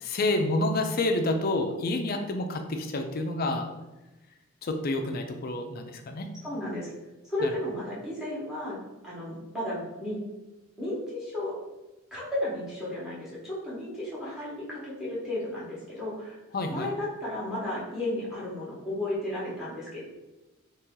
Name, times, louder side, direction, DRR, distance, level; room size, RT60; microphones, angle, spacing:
voice 1, 0.0-3.7 4.6-6.3 7.4-7.5 16.5-16.9, left 2 dB, 45° left, 5 dB, 0.4 m, -28 dB
voice 2, 6.4-6.9 7.2-8.8 9.0-10.2 10.8-11.6 12.1-16.4 16.7-20.1, left 1 dB, 5° right, -8 dB, 1.2 m, -33 dB
3.0 x 2.9 x 3.7 m, 1.1 s
head